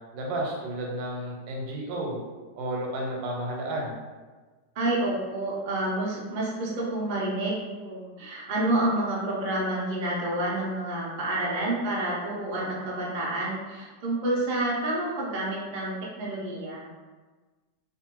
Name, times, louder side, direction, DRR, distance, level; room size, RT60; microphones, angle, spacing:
voice 1, 0.1-2.2 2.6-4.0, right 1 dB, 90° right, -1 dB, 1.3 m, -32 dB
voice 2, 4.8-16.8, right 1 dB, 70° right, -5 dB, 0.4 m, -29 dB
2.6 x 2.5 x 2.9 m, 1.3 s
omnidirectional pair, 1.9 m